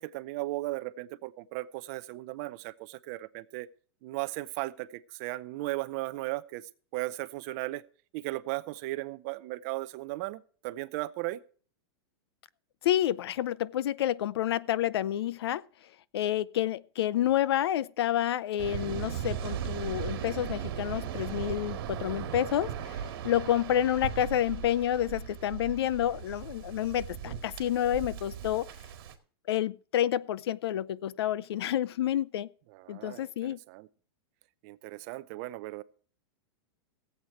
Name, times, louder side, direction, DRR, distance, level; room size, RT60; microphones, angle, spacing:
voice 1, 0.0-3.7 4.0-7.8 8.1-11.4 32.7-33.9 34.6-35.8, right 19 dB, 35° right, 0.6 m, -36 dB
voice 2, 12.8-15.6 16.1-28.7 29.5-32.5 32.9-33.6, left 11 dB, 70° left, 0.6 m, -29 dB
Waves surf, 18.6-29.1, right 9 dB, 60° right, 2.0 m, -37 dB
16.5 x 8.1 x 4.3 m
supercardioid pair, 165°, 14 cm